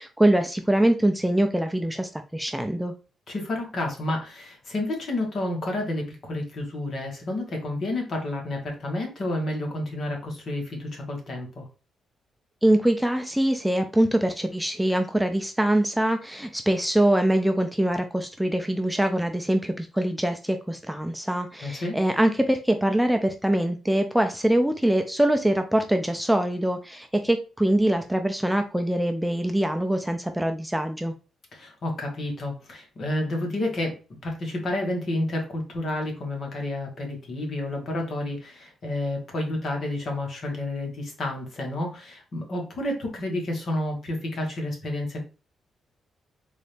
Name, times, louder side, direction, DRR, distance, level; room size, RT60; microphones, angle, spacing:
voice 1, 0.0-2.9 12.6-31.1, right 1 dB, 5° right, 6 dB, 0.4 m, -23 dB
voice 2, 3.3-11.7 21.6-22.0 31.5-34.0 34.2-45.2, left 1 dB, 55° left, 1 dB, 1.6 m, -30 dB
3.9 x 2.7 x 3.3 m, 0.33 s
cardioid pair, 95°, 0 cm